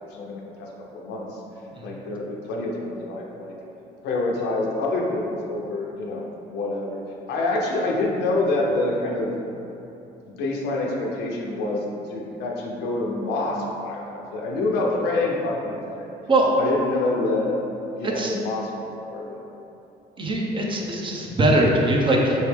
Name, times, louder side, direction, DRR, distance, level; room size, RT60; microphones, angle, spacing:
voice 1, 0.1-1.4 1.8-3.5 4.0-7.0 7.3-9.3 10.3-16.1 16.6-17.6 18.0-19.4, left 2 dB, 85° left, -1 dB, 0.6 m, -27 dB
voice 2, 20.2-22.3, right 1 dB, 30° right, -1 dB, 0.6 m, -21 dB
4.0 x 3.1 x 3.3 m, 2.9 s
cardioid pair, 110°, 17 cm